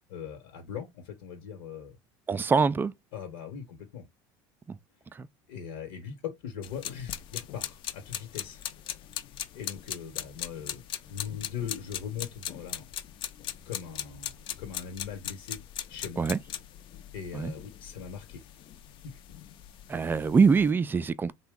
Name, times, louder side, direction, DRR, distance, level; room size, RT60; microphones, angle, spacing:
voice 1, 0.1-2.0 3.1-4.1 5.5-8.6 9.5-12.9 13.6-14.3 14.6-15.6 15.9-16.3 17.1-18.5 19.0-19.2, left 7 dB, 80° left, 1.1 m, -40 dB
voice 2, 2.3-2.9 4.7-4.8 5.1-5.3 16.2-16.4 17.3-17.5 19.9-21.3, right 5 dB, 20° right, 0.3 m, -24 dB
sound 1, 6.6-20.7, left 11 dB, 55° left, 0.5 m, -40 dB
2.9 x 2.2 x 3.5 m
supercardioid pair, 100°, 11 cm